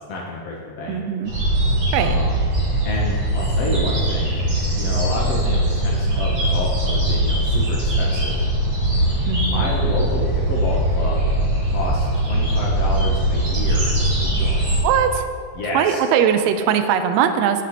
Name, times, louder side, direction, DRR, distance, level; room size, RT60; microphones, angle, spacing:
voice 1, 0.0-1.0 2.0-2.4 2.8-4.4 4.7-8.4 9.4-11.3 11.6-14.0 14.2-14.8 15.6-16.0, left 2 dB, 70° left, -3 dB, 1.6 m, -29 dB
voice 2, 0.9-1.3 1.9-2.2 9.3-9.8 14.8-15.3 15.7-17.6, right 8 dB, 85° right, 8 dB, 1.5 m, -20 dB
sound 1, 1.2-14.8, right 1 dB, 40° right, 2.2 m, -21 dB
8.2 x 7.7 x 2.8 m, 2.2 s
omnidirectional pair, 3.5 m